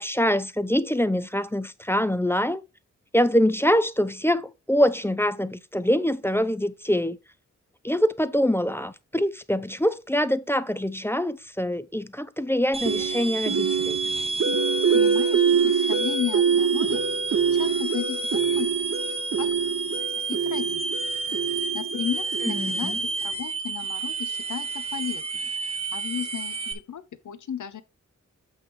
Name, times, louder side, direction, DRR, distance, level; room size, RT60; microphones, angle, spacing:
voice 1, 0.0-2.6 3.1-7.2 7.8-14.0 22.5-22.9, equal, 10° left, 0.4 m, -24 dB
sound 1, 12.7-26.7, right 3 dB, 20° right, 0.7 m, -30 dB
sound 2, 12.9-22.9, right 6 dB, 60° right, 0.8 m, -25 dB
voice 2, 14.9-17.0 17.5-19.0 19.4-19.5 19.8-20.0 20.3-20.8 21.7-25.5 25.9-27.8, left 9 dB, 85° left, 0.8 m, -34 dB
8.2 x 3.2 x 5.3 m
wide cardioid pair, 140°, 30 cm